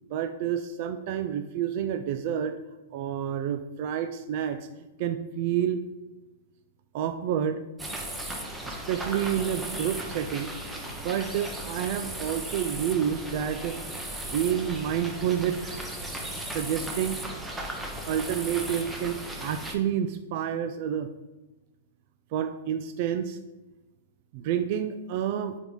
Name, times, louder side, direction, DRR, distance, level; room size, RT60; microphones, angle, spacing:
voice 1, 0.1-2.6 2.9-4.7 5.0-5.8 6.9-7.6 8.7-10.5 11.0-14.0 14.3-16.1 16.5-17.2 18.1-21.1 22.3-23.4 24.3-25.6, right 9 dB, 50° right, 9 dB, 0.3 m, -29 dB
sound 1, 7.8-19.7, right 1 dB, 10° right, 0.8 m, -36 dB
5.2 x 3.9 x 4.6 m, 1.1 s
hypercardioid pair, 130°, 0 cm